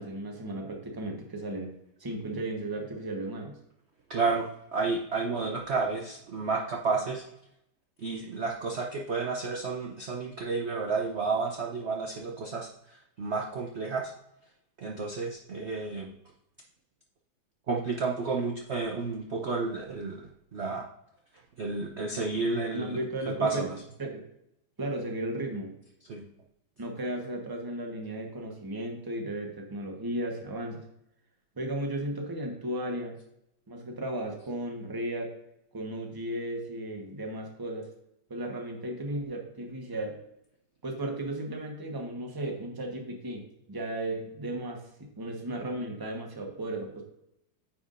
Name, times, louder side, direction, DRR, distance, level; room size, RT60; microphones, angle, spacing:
voice 1, 0.0-1.7 2.0-3.6 22.7-23.7 24.0-24.2 24.8-25.7 26.8-30.8 31.6-33.2 33.7-35.3 35.7-37.9 38.3-40.1 40.8-47.1, right 1 dB, 15° right, 1 dB, 0.8 m, -35 dB
voice 2, 4.1-7.2 8.0-14.1 14.8-16.1 17.7-20.9 21.6-23.7 26.1-26.3, right 4 dB, 90° right, 0 dB, 0.5 m, -31 dB
9.4 x 5.9 x 2.5 m, 0.80 s
omnidirectional pair, 2.2 m